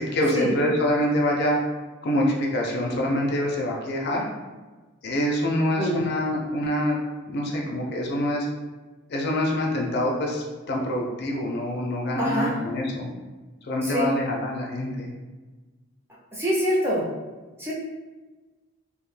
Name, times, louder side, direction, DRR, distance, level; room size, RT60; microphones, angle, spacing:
voice 1, 0.0-1.6 2.0-4.3 5.0-7.0 7.3-8.5 9.1-13.1 13.6-15.1, left 1 dB, 50° left, -1 dB, 0.4 m, -25 dB
voice 2, 12.2-12.5 13.8-14.1 16.3-17.1 17.6-17.7, equal, 10° right, -6 dB, 0.4 m, -25 dB
2.5 x 2.1 x 3.1 m, 1.2 s
head